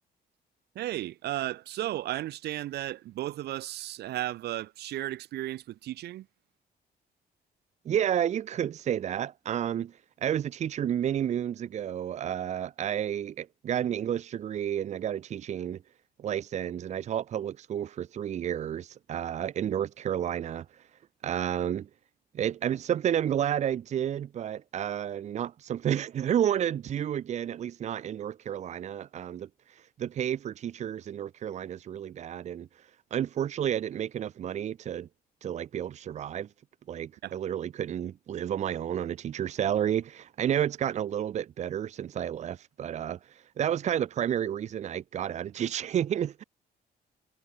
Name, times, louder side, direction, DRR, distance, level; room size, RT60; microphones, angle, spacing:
voice 1, 0.7-6.3 37.2-37.3, right 14 dB, 80° right, 2.2 m, -34 dB
voice 2, 7.8-15.8 16.2-20.6 21.2-21.9 22.3-32.7 33.1-35.1 35.4-36.5 36.9-46.4, right 10 dB, 45° right, 1.3 m, -31 dB
cardioid pair, 180°, 17 cm